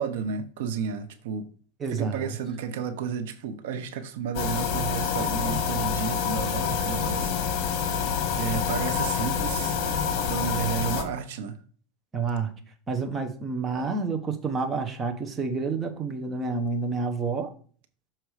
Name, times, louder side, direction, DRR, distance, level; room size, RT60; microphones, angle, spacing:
voice 1, 0.0-1.5 1.9-9.8 10.3-11.6, right 7 dB, 75° right, 0.8 m, -32 dB
voice 2, 1.8-2.3 12.1-12.5 12.9-17.5, right 4 dB, 20° right, 0.9 m, -29 dB
sound 1, 4.3-11.0, left 7 dB, 45° left, 1.6 m, -27 dB
6.6 x 4.5 x 4.8 m
supercardioid pair, 145°, 0 cm